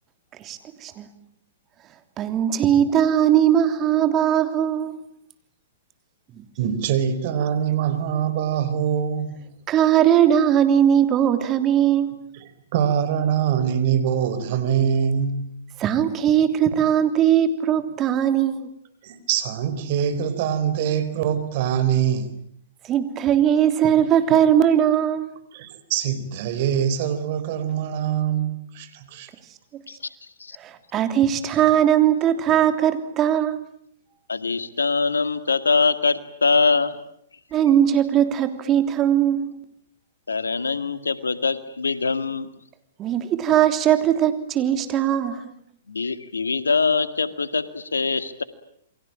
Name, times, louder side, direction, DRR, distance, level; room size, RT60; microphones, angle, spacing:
voice 1, 0.4-1.1 2.2-5.0 6.4-6.5 9.7-12.3 15.8-18.7 22.8-25.4 29.7-29.8 30.6-33.7 37.5-39.6 43.0-45.4, right 10 dB, 30° right, 3.2 m, -20 dB
voice 2, 6.6-9.5 12.4-15.4 19.0-22.3 25.5-29.3, right 8 dB, 50° right, 4.4 m, -24 dB
voice 3, 34.3-37.0 40.3-42.5 45.9-48.4, left 4 dB, 90° left, 2.1 m, -23 dB
28.5 x 23.5 x 8.8 m
hypercardioid pair, 115°, 0 cm